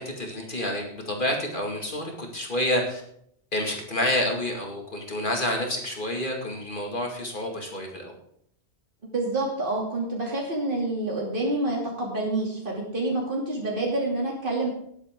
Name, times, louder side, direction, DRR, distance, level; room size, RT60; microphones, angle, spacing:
voice 1, 0.0-3.0 3.5-8.1, left 1 dB, 50° left, 1 dB, 2.5 m, -28 dB
voice 2, 9.0-14.7, right 2 dB, 50° right, -2 dB, 3.0 m, -28 dB
19.0 x 8.2 x 3.8 m, 0.67 s
omnidirectional pair, 1.1 m